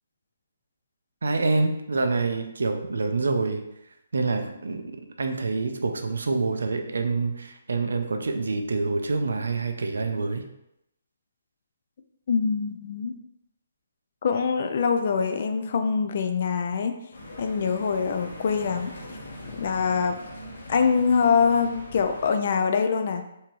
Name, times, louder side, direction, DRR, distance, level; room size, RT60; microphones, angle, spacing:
voice 1, 1.2-3.6 4.1-10.5, right 3 dB, 85° right, 6 dB, 0.5 m, -26 dB
voice 2, 12.3-13.1 14.2-16.9 17.4-18.9 19.6-20.2 20.7-23.2, left 5 dB, 35° left, 7 dB, 0.3 m, -24 dB
sound 1, 17.1-22.3, left 1 dB, 80° left, 1.2 m, -42 dB
4.2 x 2.8 x 3.1 m, 0.82 s
hypercardioid pair, 180°, 0 cm